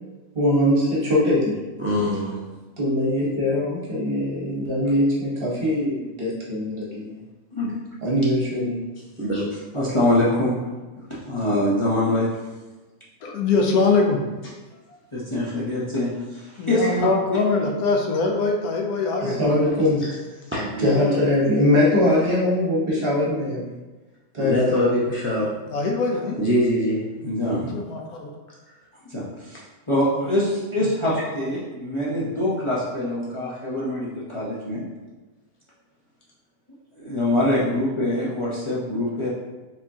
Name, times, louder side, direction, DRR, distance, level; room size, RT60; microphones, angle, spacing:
voice 1, 0.3-1.6 2.8-7.2 8.0-8.8 19.2-20.0 20.8-23.7 24.3-24.7 27.4-27.7, left 1 dB, 40° right, -5 dB, 1.2 m, -22 dB
voice 2, 1.8-2.4 9.2-9.5 20.0-20.1 20.5-20.6 24.4-25.5 26.4-27.0, left 1 dB, 15° right, -6 dB, 0.5 m, -23 dB
voice 3, 9.7-10.6 11.1-12.3 15.1-17.4 20.6-20.9 27.2-27.7 29.1-29.6 29.9-34.8 36.9-39.3, left 1 dB, 30° left, -7 dB, 0.7 m, -24 dB
voice 4, 13.2-14.2 16.6-19.4 20.8-21.1 25.7-26.3 27.7-28.3, left 3 dB, 85° left, 1 dB, 1.2 m, -22 dB
5.0 x 3.5 x 2.7 m, 1.2 s
omnidirectional pair, 1.5 m